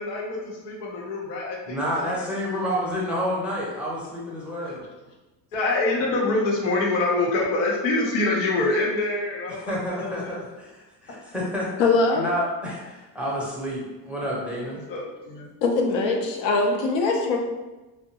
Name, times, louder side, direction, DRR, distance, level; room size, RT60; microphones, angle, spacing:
voice 1, 0.0-1.8 2.0-2.2 2.5-2.8 4.6-4.8 5.5-10.3 14.9-15.5, left 2 dB, 85° left, -2 dB, 0.8 m, -26 dB
voice 2, 1.7-4.8 9.5-11.7 12.1-14.8, equal, ahead, -5 dB, 0.6 m, -29 dB
voice 3, 11.8-12.2 15.6-17.4, left 3 dB, 60° left, 2 dB, 0.6 m, -22 dB
2.6 x 2.1 x 2.7 m, 1.1 s
supercardioid pair, 90°, 50 cm